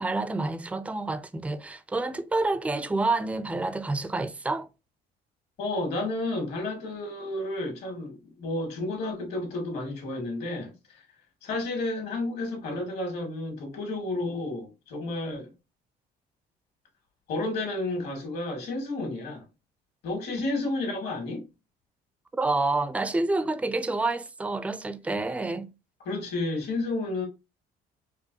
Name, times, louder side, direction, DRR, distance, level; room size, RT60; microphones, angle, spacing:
voice 1, 0.0-4.7 22.4-25.7, right 2 dB, 10° right, 0.4 m, -28 dB
voice 2, 5.6-11.0 11.4-15.5 17.3-19.4 20.0-21.4 26.0-27.3, left 2 dB, 70° left, 1.9 m, -31 dB
5.1 x 2.2 x 2.7 m
cardioid pair, 110°, 17 cm